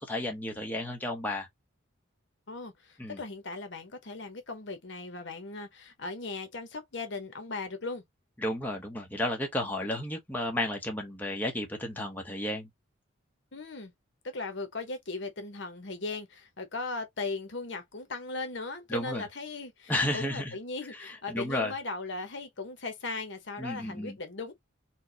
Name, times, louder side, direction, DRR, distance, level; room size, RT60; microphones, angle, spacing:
voice 1, 0.0-1.5 3.0-3.2 8.4-12.7 18.9-19.2 19.9-20.5 21.0-21.7 23.6-24.2, left 1 dB, 10° left, 0.8 m, -32 dB
voice 2, 2.5-8.0 13.5-13.9 14.3-24.5, left 3 dB, 60° left, 0.9 m, -38 dB
4.4 x 2.1 x 2.8 m
head